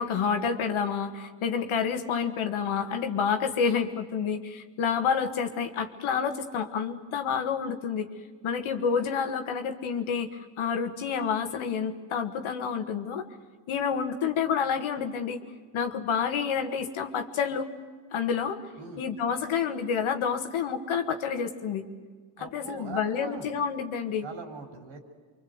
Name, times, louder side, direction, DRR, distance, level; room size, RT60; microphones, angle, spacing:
voice 1, 0.0-8.1 8.4-13.2 13.7-15.4 15.7-17.7 18.1-18.6 19.0-21.8 22.4-24.3, left 6 dB, 80° left, 6 dB, 1.8 m, -29 dB
voice 2, 22.4-23.5 24.2-25.0, right 5 dB, 75° right, 3 dB, 4.0 m, -41 dB
25.0 x 23.5 x 8.0 m, 1.5 s
supercardioid pair, 45°, 48 cm